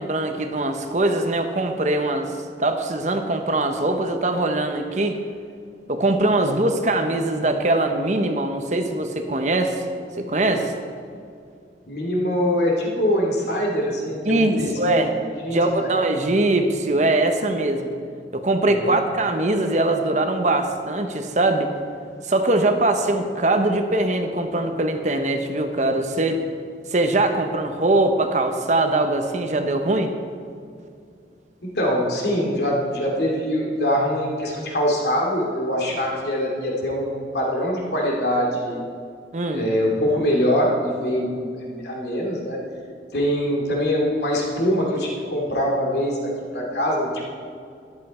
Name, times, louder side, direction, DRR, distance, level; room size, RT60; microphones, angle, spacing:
voice 1, 0.0-2.3 2.6-5.2 5.9-9.8 10.2-10.7 14.2-15.1 15.5-17.9 18.3-21.7 22.2-26.4 26.9-30.1 39.3-39.7, right 2 dB, 40° right, 6 dB, 0.9 m, -22 dB
voice 2, 11.9-15.1 15.4-15.9 18.8-19.0 31.7-38.8 39.5-40.7 41.0-42.6 43.1-47.2, equal, 70° left, -1 dB, 2.7 m, -23 dB
13.5 x 11.0 x 4.3 m, 2.3 s
head